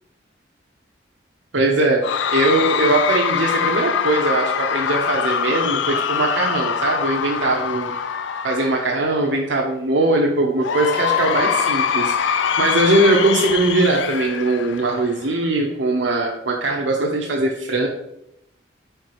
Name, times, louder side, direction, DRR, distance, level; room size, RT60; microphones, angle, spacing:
voice 1, 1.5-8.2 8.4-17.9, right 2 dB, 80° right, -2 dB, 0.8 m, -20 dB
Cheering / Crowd, 2.0-9.3 10.6-15.3, left 7 dB, 80° left, 0.4 m, -23 dB
5.1 x 4.5 x 4.8 m, 0.80 s
head